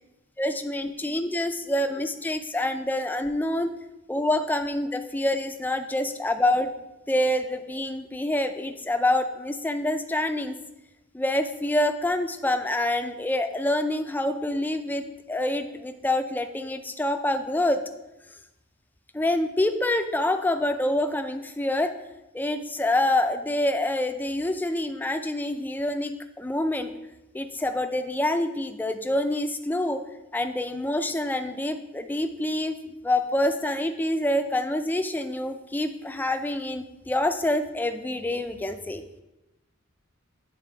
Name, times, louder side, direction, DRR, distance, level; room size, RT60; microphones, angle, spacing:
voice 1, 0.4-3.7 4.1-6.7 7.1-10.6 11.1-17.9 19.1-22.0 22.3-26.9 27.3-30.0 30.3-32.7 33.0-39.0, left 1 dB, 10° left, 8 dB, 0.3 m, -26 dB
9.0 x 4.0 x 3.4 m, 0.97 s
head